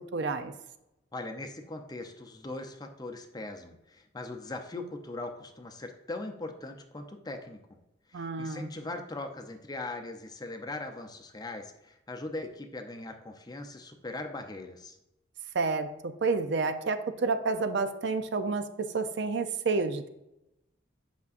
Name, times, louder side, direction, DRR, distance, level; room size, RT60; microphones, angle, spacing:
voice 1, 0.1-0.5 8.1-8.7 15.5-20.1, right 4 dB, 60° right, 9 dB, 0.5 m, -30 dB
voice 2, 1.1-7.6 8.1-15.0, left 2 dB, 20° left, 5 dB, 0.6 m, -40 dB
8.3 x 5.9 x 2.5 m, 0.89 s
head